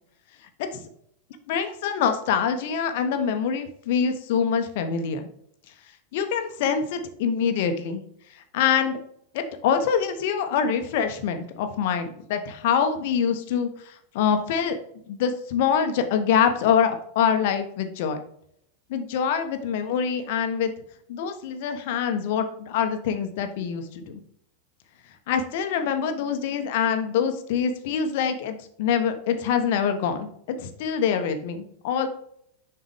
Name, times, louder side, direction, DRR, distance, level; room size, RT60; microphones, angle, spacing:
voice 1, 1.5-5.3 6.1-8.0 8.5-9.0 9.3-14.8 15.1-18.2 18.9-20.7 21.1-24.2 25.3-32.1, left 7 dB, 50° left, 8 dB, 1.0 m, -25 dB
7.3 x 5.7 x 3.6 m, 0.69 s
figure-of-eight pair, 90°, 0 cm